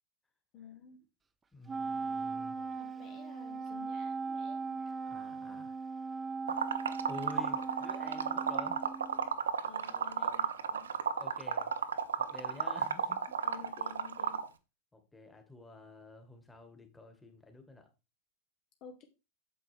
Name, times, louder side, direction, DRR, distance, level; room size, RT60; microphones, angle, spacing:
voice 1, 0.5-1.0 2.6-5.0 9.6-10.9 13.4-14.4 18.8-19.0, left 6 dB, 40° left, 5 dB, 1.3 m, -53 dB
voice 2, 1.5-2.7 5.0-5.8 7.1-8.8 11.2-11.8 12.2-13.6 14.9-17.9, left 2 dB, 10° left, 5 dB, 1.9 m, -50 dB
Wind instrument woodwind instrument, 1.7-9.3, right 4 dB, 15° right, 0.7 m, -39 dB
Liquid, 6.5-14.5, right 7 dB, 65° right, 0.8 m, -33 dB
9.0 x 7.6 x 3.6 m, 0.29 s
figure-of-eight pair, 90°, 0 cm